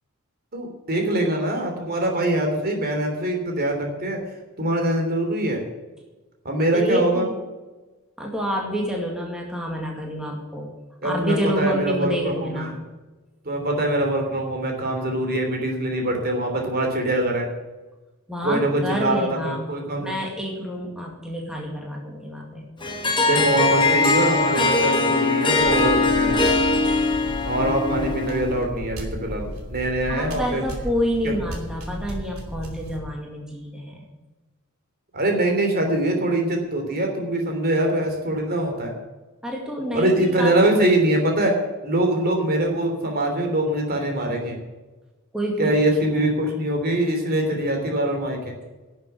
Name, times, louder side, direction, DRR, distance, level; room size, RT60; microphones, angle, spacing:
voice 1, 0.5-4.2 4.6-5.6 6.4-7.3 11.0-12.8 13.4-17.5 18.4-20.0 23.2-26.5 27.4-30.6 31.2-31.3 35.1-38.9 39.9-44.6 45.6-48.5, right 1 dB, 45° right, 3 dB, 3.2 m, -23 dB
voice 2, 6.7-7.3 8.2-10.7 11.0-12.7 18.3-19.6 20.0-22.7 30.1-34.1 39.4-40.5 45.3-45.7 46.1-46.3, equal, 5° right, -1 dB, 2.2 m, -28 dB
Harp, 22.8-28.6, left 3 dB, 20° left, 1.7 m, -21 dB
sound 1, 25.6-33.0, equal, 80° right, 2.8 m, -35 dB
11.5 x 7.4 x 9.7 m, 1.2 s
head